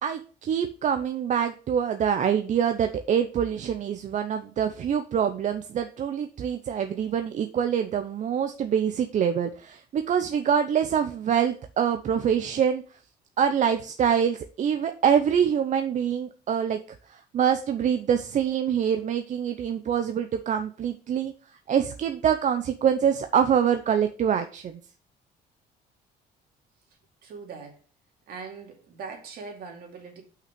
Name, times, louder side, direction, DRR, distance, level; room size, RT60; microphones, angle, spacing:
voice 1, 0.0-12.8 13.4-16.8 17.1-21.3 21.7-24.8, right 8 dB, 45° right, 0.7 m, -25 dB
voice 2, 27.2-27.8 28.3-30.2, right 5 dB, 65° right, 2.6 m, -41 dB
5.9 x 5.8 x 5.2 m
cardioid pair, 110°, 17 cm